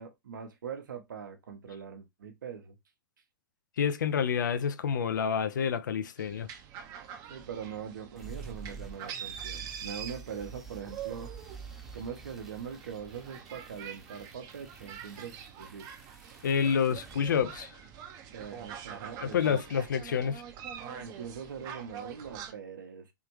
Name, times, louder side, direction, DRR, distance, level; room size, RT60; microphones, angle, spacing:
voice 1, 0.0-2.7 7.3-11.3 11.9-15.9 18.3-19.6 21.0-23.1, right 7 dB, 70° right, 1.0 m, -42 dB
voice 2, 3.8-6.5 16.4-17.7 19.2-20.4, left 7 dB, 65° left, 0.6 m, -28 dB
sound 1, 6.2-22.5, right 8 dB, 35° right, 0.7 m, -45 dB
sound 2, 8.2-18.1, right 4 dB, ahead, 0.8 m, -49 dB
3.6 x 3.3 x 3.0 m
figure-of-eight pair, 105°, 11 cm